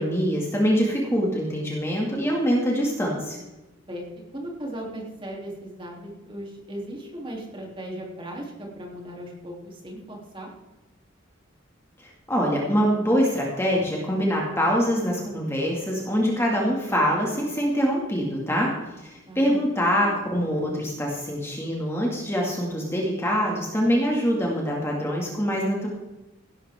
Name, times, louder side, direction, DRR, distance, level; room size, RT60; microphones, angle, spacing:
voice 1, 0.0-3.4 12.0-18.7 19.0-25.9, equal, 15° left, -2 dB, 2.3 m, -24 dB
voice 2, 4.3-10.5 19.3-19.6, right 1 dB, 25° right, -2 dB, 3.3 m, -37 dB
16.5 x 12.5 x 3.7 m, 1.0 s
head